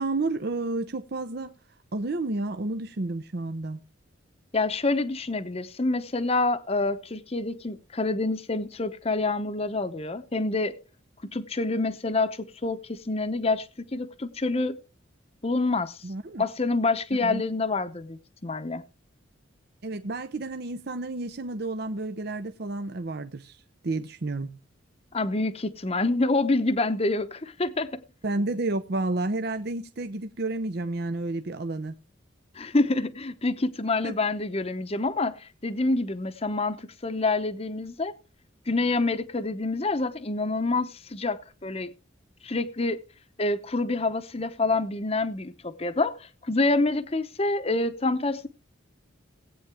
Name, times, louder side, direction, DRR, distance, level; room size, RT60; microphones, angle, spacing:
voice 1, 0.0-1.5 1.9-3.8 16.0-16.4 17.2-17.4 19.8-24.6 28.2-31.9 34.0-34.1, right 2 dB, 50° right, 0.7 m, -31 dB
voice 2, 4.5-10.8 11.2-14.8 15.4-16.0 16.4-18.8 25.1-28.0 32.6-38.1 38.7-41.9 42.4-43.0 43.4-48.5, left 2 dB, 30° left, 0.8 m, -27 dB
18.0 x 8.7 x 3.4 m
head